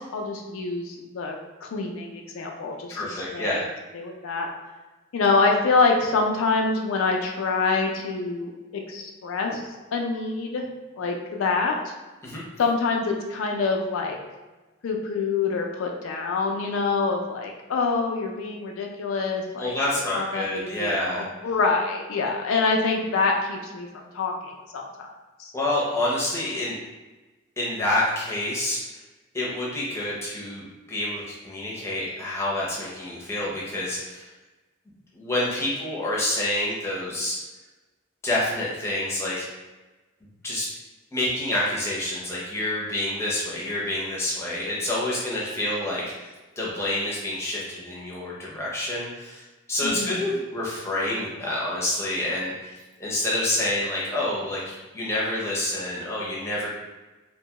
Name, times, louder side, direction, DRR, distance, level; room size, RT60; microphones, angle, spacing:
voice 1, 0.1-3.6 3.9-4.5 5.1-8.5 8.9-10.7 11.0-11.9 12.6-14.2 14.8-19.7 20.1-23.9 24.1-25.1 25.4-25.5 49.8-50.3, left 4 dB, 85° left, 1 dB, 0.4 m, -26 dB
voice 2, 2.9-3.6 12.2-12.4 19.6-21.2 25.5-26.8 27.6-28.8 29.3-34.3 35.1-37.4 38.2-39.4 40.4-40.7 41.1-46.3 46.6-52.7 53.0-56.7, left 1 dB, 15° left, -6 dB, 0.6 m, -28 dB
2.7 x 2.2 x 2.9 m, 1.2 s
head